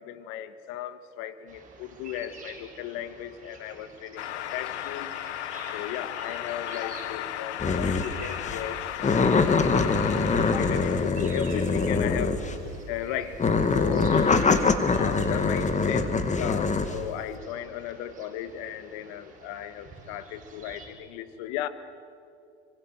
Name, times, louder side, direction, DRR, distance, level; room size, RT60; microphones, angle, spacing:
voice 1, 0.0-5.1 5.7-10.1 10.4-12.4 12.9-13.4 13.7-14.2 14.9-21.7, left 11 dB, 60° left, 12 dB, 1.8 m, -36 dB
sound 1, 1.5-20.9, right 3 dB, 25° right, 7.1 m, -47 dB
sound 2, 4.2-11.1, left 12 dB, 85° left, 1.0 m, -35 dB
sound 3, 7.6-8.1 8.5-8.6 9.0-12.7 13.3-17.0, left 4 dB, 20° left, 2.0 m, -24 dB
26.0 x 24.5 x 7.8 m, 2.5 s
hypercardioid pair, 95°, 33 cm